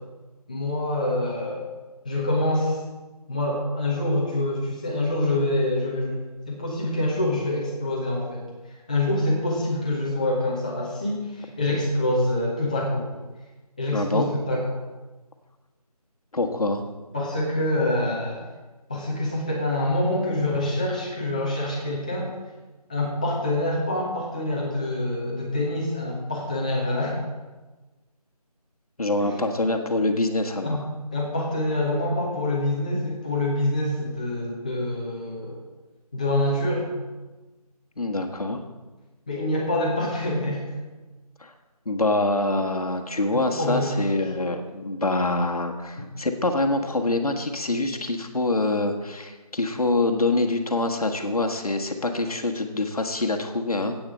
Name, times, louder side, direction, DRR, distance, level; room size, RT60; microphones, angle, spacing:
voice 1, 0.5-1.7 2.0-2.8 3.3-6.2 6.5-8.4 8.9-13.0 13.8-14.8 17.1-18.4 18.9-22.3 22.9-27.2 30.6-30.8 31.1-35.6 36.1-36.9 39.3-40.6 43.3-44.0 46.0-46.1, left 1 dB, 10° left, -4 dB, 1.3 m, -26 dB
voice 2, 13.9-14.3 16.3-16.8 29.0-30.9 38.0-38.6 41.4-41.5 41.8-54.0, left 2 dB, 65° left, 4 dB, 1.5 m, -25 dB
8.7 x 8.7 x 7.5 m, 1.2 s
figure-of-eight pair, 175°, 20 cm